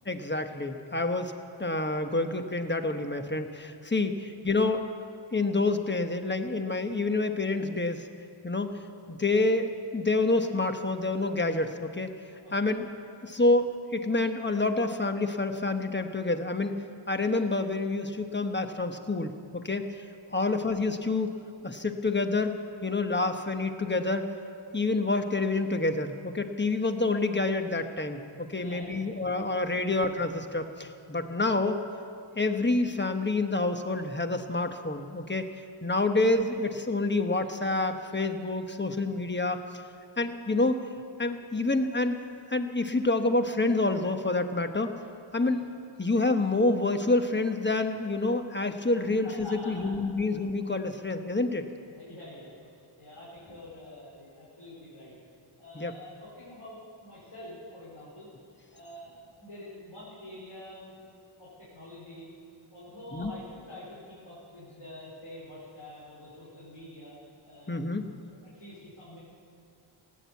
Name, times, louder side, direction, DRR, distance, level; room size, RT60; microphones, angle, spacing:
voice 1, 0.1-1.3 1.6-4.8 5.3-8.1 8.4-8.8 9.1-12.1 12.5-12.9 13.2-16.7 17.1-20.0 20.3-21.3 21.6-24.3 24.7-31.8 32.4-35.5 35.8-39.6 40.2-40.8 41.2-42.2 42.5-44.9 45.3-45.6 46.0-51.6 55.7-55.9 63.1-63.3 67.7-68.1, left 2 dB, 20° left, 6 dB, 1.1 m, -28 dB
voice 2, 28.5-29.0 29.7-29.9 45.3-45.5 48.8-49.9 52.0-55.1 55.6-61.0 61.4-62.3 62.7-67.2 67.4-67.7 68.4-69.2, left 1 dB, 90° left, -9 dB, 4.6 m, -47 dB
17.0 x 9.3 x 8.3 m, 2.4 s
wide cardioid pair, 50°, 50 cm